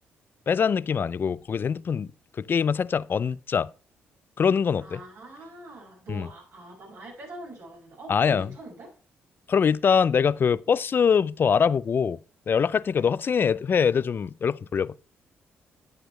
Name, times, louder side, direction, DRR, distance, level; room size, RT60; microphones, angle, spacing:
voice 1, 0.5-2.1 2.4-3.7 4.4-5.0 6.1-6.3 8.1-8.5 9.5-12.2 12.5-14.9, left 6 dB, 45° left, 0.4 m, -23 dB
voice 2, 4.8-8.9 13.0-13.2, right 1 dB, 70° right, 5.7 m, -43 dB
10.5 x 8.6 x 3.3 m
supercardioid pair, 55°, 5 cm